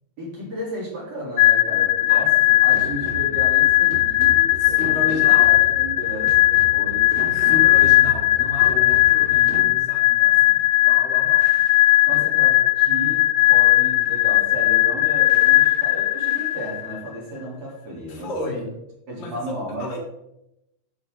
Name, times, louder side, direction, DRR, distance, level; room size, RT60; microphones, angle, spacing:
voice 1, 0.2-7.1 7.5-7.6 12.0-18.7 19.1-20.0, equal, 45° right, -4 dB, 4.3 m, -34 dB
sound 1, 1.4-17.0, left 16 dB, 85° left, 2.6 m, -18 dB
voice 2, 2.1-2.6 4.6-5.5 7.2-11.5 12.1-12.2 18.1-18.8 19.2-19.5 19.8-20.0, left 2 dB, 65° left, 0 dB, 3.3 m, -33 dB
sound 2, 2.7-9.8, right 5 dB, 80° right, 2.6 m, -36 dB
11.5 x 8.5 x 3.8 m, 0.85 s
omnidirectional pair, 4.2 m